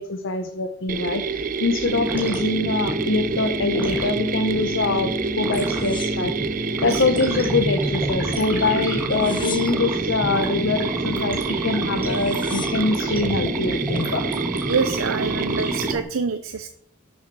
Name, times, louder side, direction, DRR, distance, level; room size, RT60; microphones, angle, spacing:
voice 1, 0.0-6.3 6.8-14.2, left 3 dB, 65° left, 7 dB, 0.8 m, -24 dB
Mechanisms, 0.9-15.9, right 5 dB, 45° right, 0.5 m, -28 dB
sound 1, 1.8-16.0, equal, 10° right, 2.1 m, -28 dB
sound 2, 5.7-7.0 7.5-8.3 9.0-10.1 11.6-11.7 12.0-12.9 13.6-14.1, left 7 dB, 25° left, 0.8 m, -39 dB
voice 2, 6.7-7.0 14.7-16.7, right 5 dB, 85° right, 11 dB, 0.6 m, -26 dB
12.0 x 6.3 x 4.6 m, 0.70 s
head